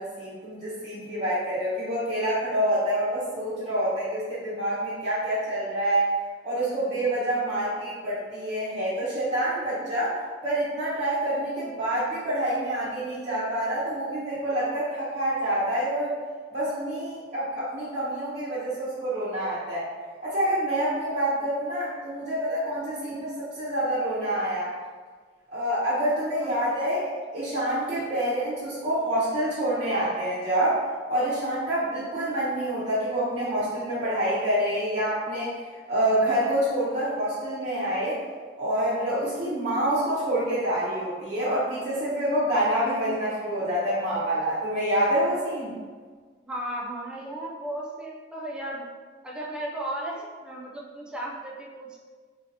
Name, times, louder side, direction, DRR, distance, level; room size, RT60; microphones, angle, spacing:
voice 1, 0.0-6.1 6.4-10.2 10.4-16.1 16.5-19.9 20.2-24.7 25.5-27.0 27.3-30.8 31.1-35.5 35.9-38.2 38.6-45.7, right 1 dB, 40° right, -10 dB, 0.7 m, -27 dB
voice 2, 26.4-26.8 46.5-48.9 49.2-52.0, right 1 dB, 5° right, -4 dB, 0.3 m, -35 dB
3.2 x 2.8 x 2.6 m, 1.5 s
head